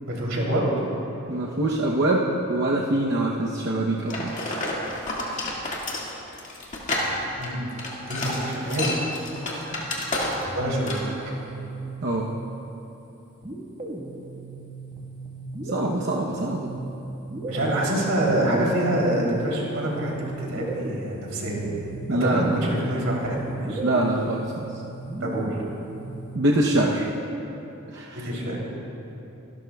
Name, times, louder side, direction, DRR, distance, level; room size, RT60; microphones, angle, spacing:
voice 1, 0.0-0.6 7.4-8.8 10.5-11.1 17.5-20.1 20.4-21.7 22.2-23.8 25.2-25.6 28.1-28.6, right 1 dB, 85° right, -3 dB, 3.1 m, -26 dB
voice 2, 1.3-4.3 12.0-12.3 15.7-16.7 22.1-22.6 23.8-24.6 26.3-27.1 27.9-28.3, right 1 dB, 55° right, -2 dB, 0.8 m, -24 dB
sound 1, 4.1-10.6 10.9-11.1, left 1 dB, 35° left, 2.0 m, -29 dB
sound 2, 10.3-12.5 13.4-26.4, right 2 dB, 35° right, 1.5 m, -36 dB
24.5 x 12.5 x 2.3 m, 2.9 s
head